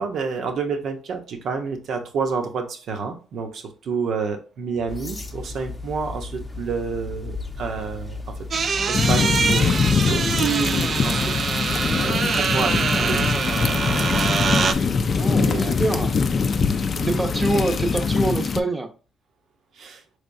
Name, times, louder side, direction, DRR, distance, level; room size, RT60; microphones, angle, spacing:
voice 1, 0.0-8.2 8.9-11.3 11.9-14.3 14.7-14.9 15.3-16.1 17.0-17.6 19.8-20.0, right 5 dB, 65° right, 0.8 m, -29 dB
sound 1, 4.9-18.4, left 3 dB, 15° left, 0.7 m, -36 dB
sound 2, 8.5-14.7, right 5 dB, 50° right, 0.3 m, -24 dB
sound 3, 8.9-18.6, left 5 dB, 45° left, 0.4 m, -23 dB
voice 2, 15.2-16.2 16.9-18.9, right 2 dB, 20° right, 0.7 m, -25 dB
4.3 x 3.3 x 2.6 m
cardioid pair, 90°, 0 cm